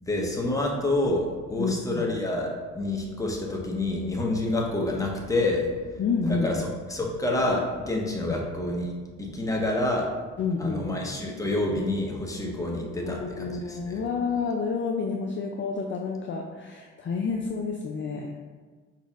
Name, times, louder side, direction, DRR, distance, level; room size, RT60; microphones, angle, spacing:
voice 1, 0.0-5.7 6.2-6.6 6.9-8.9 9.2-10.1 10.6-14.0, left 2 dB, 10° left, -1 dB, 0.8 m, -28 dB
voice 2, 1.6-2.1 6.0-6.6 8.3-8.4 10.4-11.1 13.0-18.3, left 4 dB, 40° left, 1 dB, 0.4 m, -29 dB
5.0 x 4.1 x 2.4 m, 1.5 s
cardioid pair, 90°, 30 cm